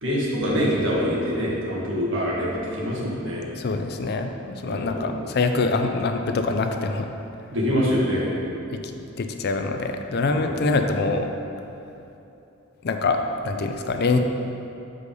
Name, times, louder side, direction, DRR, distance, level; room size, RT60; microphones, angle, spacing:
voice 1, 0.0-3.5 4.6-5.2 7.5-8.3 10.3-10.7, equal, 60° right, -5 dB, 1.6 m, -25 dB
voice 2, 3.6-7.1 8.7-8.8 9.2-11.3 12.8-13.2 13.4-14.2, left 3 dB, 50° left, 6 dB, 0.4 m, -24 dB
6.7 x 5.0 x 5.3 m, 2.9 s
head